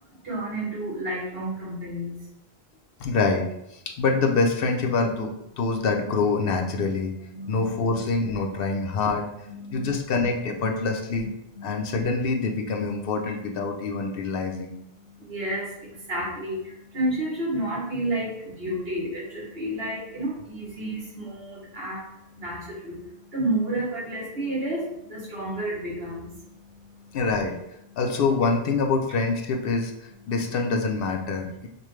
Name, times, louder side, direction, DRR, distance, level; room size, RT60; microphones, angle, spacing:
voice 1, 0.2-2.2 7.3-8.0 9.5-9.9 11.2-11.8 14.9-27.2 27.9-28.0, right 1 dB, 70° right, -4 dB, 1.6 m, -31 dB
voice 2, 3.0-7.1 7.5-9.3 9.7-11.3 11.6-14.7 27.1-27.6 28.0-29.9 30.3-31.7, left 4 dB, 70° left, 3 dB, 0.7 m, -25 dB
5.3 x 2.2 x 3.1 m, 0.81 s
omnidirectional pair, 1.1 m